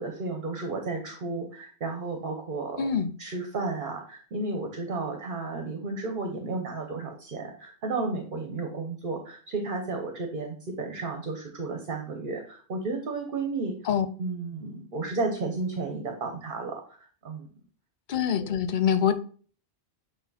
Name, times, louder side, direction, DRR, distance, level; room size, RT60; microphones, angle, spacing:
voice 1, 0.0-2.9 3.2-13.7 14.2-16.8 17.2-17.5 18.4-18.5, right 3 dB, 55° right, 1.1 m, -33 dB
voice 2, 2.8-3.1 13.9-14.1 18.1-19.1, left 8 dB, 55° left, 0.7 m, -24 dB
8.4 x 2.9 x 4.1 m
omnidirectional pair, 1.1 m